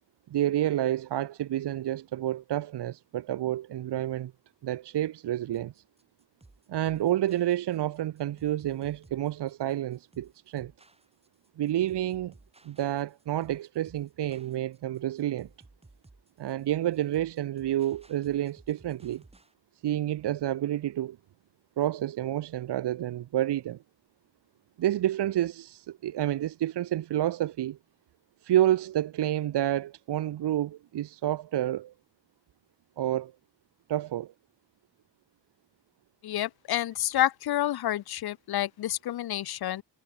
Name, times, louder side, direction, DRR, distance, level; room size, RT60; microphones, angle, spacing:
voice 1, 0.3-4.3 4.6-5.7 6.7-10.7 11.6-12.3 12.6-15.5 16.4-19.2 19.8-21.2 21.8-23.8 24.8-27.8 28.4-31.9 33.0-33.3 33.9-34.3, right 12 dB, 65° right, 1.1 m, -29 dB
sound 1, 5.5-19.5, right 2 dB, 15° right, 6.7 m, -58 dB
voice 2, 36.2-39.8, left 13 dB, 60° left, 0.7 m, -29 dB
wide cardioid pair, 165°, 43 cm